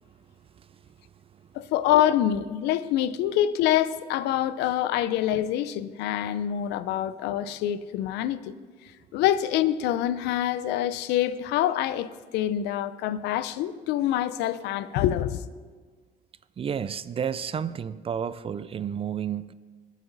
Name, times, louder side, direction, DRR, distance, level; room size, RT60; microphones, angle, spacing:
voice 1, 0.5-0.8 16.6-19.5, right 8 dB, 35° right, 0.5 m, -31 dB
voice 2, 1.5-8.5 9.1-15.4, left 12 dB, 90° left, 0.6 m, -26 dB
20.0 x 8.4 x 4.0 m
cardioid pair, 110°, 17 cm